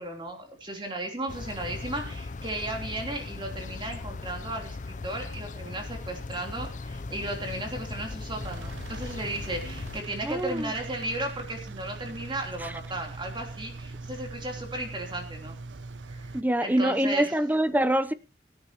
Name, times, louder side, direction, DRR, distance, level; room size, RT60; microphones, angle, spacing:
voice 1, 0.0-15.6 16.1-17.3, right 1 dB, 25° right, 3.4 m, -35 dB
sound 1, 1.3-10.0, left 3 dB, 45° left, 0.5 m, -38 dB
Engine, 8.4-16.4, right 3 dB, 90° right, 0.7 m, -41 dB
voice 2, 10.2-10.7 12.6-12.7 16.3-18.1, right 1 dB, 10° right, 0.7 m, -25 dB
23.0 x 9.7 x 3.0 m
head